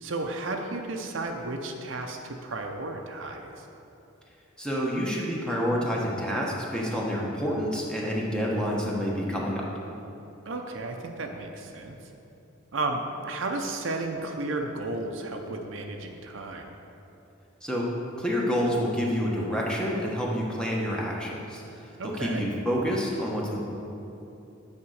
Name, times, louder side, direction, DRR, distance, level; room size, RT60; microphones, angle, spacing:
voice 1, 0.0-3.6 10.5-12.0 12.7-16.8 22.0-22.4, right 2 dB, 65° right, 3 dB, 0.7 m, -33 dB
voice 2, 4.6-9.6 17.6-17.9 18.2-21.9 22.2-23.6, equal, 5° left, -4 dB, 1.0 m, -28 dB
8.7 x 4.3 x 6.4 m, 2.8 s
head